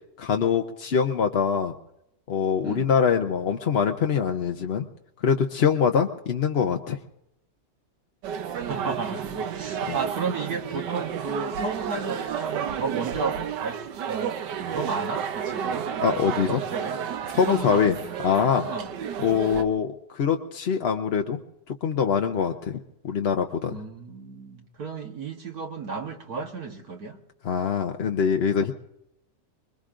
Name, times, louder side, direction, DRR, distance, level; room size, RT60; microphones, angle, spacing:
voice 1, 0.2-1.7 2.3-4.9 5.2-7.0 9.9-10.0 16.0-16.6 17.3-17.9 18.2-18.7 19.2-21.4 21.8-22.8 23.0-23.8 27.4-28.7, left 7 dB, 50° left, 4 dB, 0.8 m, -23 dB
sound 1, 8.2-19.6, right 8 dB, 75° right, 1.4 m, -31 dB
voice 2, 8.5-15.9 16.5-17.0 17.5-17.9 18.7-18.9 23.7-27.2, right 4 dB, 60° right, 2 dB, 1.7 m, -33 dB
25.0 x 22.0 x 2.5 m, 0.82 s
omnidirectional pair, 1.9 m